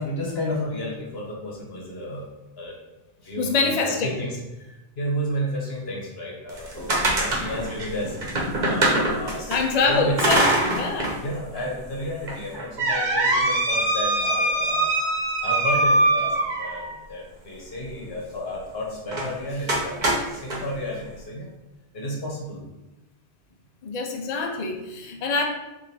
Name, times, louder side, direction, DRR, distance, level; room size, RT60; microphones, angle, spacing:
voice 1, 0.0-2.3 2.6-2.8 3.2-10.3 11.2-14.9 15.4-21.5 21.9-22.6, equal, 70° left, -2 dB, 1.2 m, -32 dB
voice 2, 3.4-4.2 9.5-11.2 23.8-25.4, left 4 dB, 45° left, 2 dB, 0.6 m, -25 dB
sound 1, 6.5-9.6 10.2-11.2 11.6-11.7 12.3-16.9 19.1-19.3 19.7-20.6, right 2 dB, 50° right, 1.0 m, -23 dB
4.9 x 2.6 x 4.1 m, 1.0 s
omnidirectional pair, 1.1 m